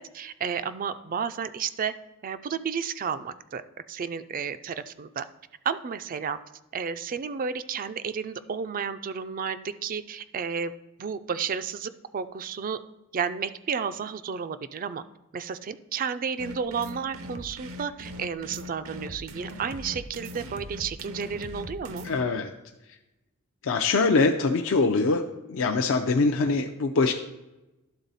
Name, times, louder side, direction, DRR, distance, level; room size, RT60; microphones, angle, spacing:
voice 1, 0.1-1.9 2.2-3.6 3.9-5.3 5.7-6.4 6.7-10.7 11.0-12.8 13.1-15.0 15.3-22.1, right 6 dB, 40° right, 12 dB, 0.4 m, -32 dB
sound 1, 16.4-22.2, equal, 70° right, 0.7 m, -40 dB
voice 2, 22.0-22.5 23.6-27.1, left 3 dB, 65° left, 3 dB, 0.5 m, -23 dB
11.5 x 4.0 x 4.0 m, 0.99 s
head